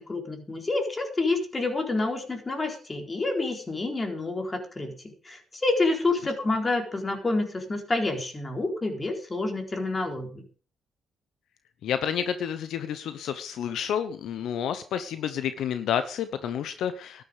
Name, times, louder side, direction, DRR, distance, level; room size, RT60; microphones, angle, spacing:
voice 1, 0.1-4.9 5.2-10.4, left 2 dB, 25° left, 4 dB, 4.2 m, -28 dB
voice 2, 11.8-17.2, left 8 dB, 75° left, 11 dB, 1.0 m, -30 dB
13.0 x 10.5 x 5.2 m, 0.39 s
cardioid pair, 90°, 0 cm